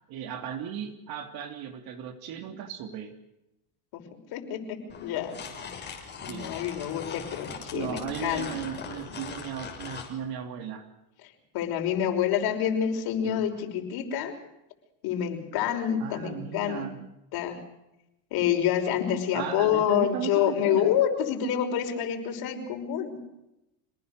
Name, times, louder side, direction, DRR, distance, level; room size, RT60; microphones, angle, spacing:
voice 1, 0.1-3.1 6.3-6.5 6.8-6.9 7.7-10.9 13.2-13.4 16.0-17.0 19.3-20.9, right 8 dB, 55° right, 7 dB, 3.1 m, -36 dB
voice 2, 4.3-5.4 6.2-8.9 11.2-14.3 15.0-16.9 17.3-17.6 18.3-23.2, left 9 dB, 55° left, 3 dB, 5.8 m, -28 dB
sound 1, 4.9-10.1, left 6 dB, 25° left, 6.4 m, -40 dB
27.0 x 19.5 x 6.7 m, 0.90 s
supercardioid pair, 130°, 45 cm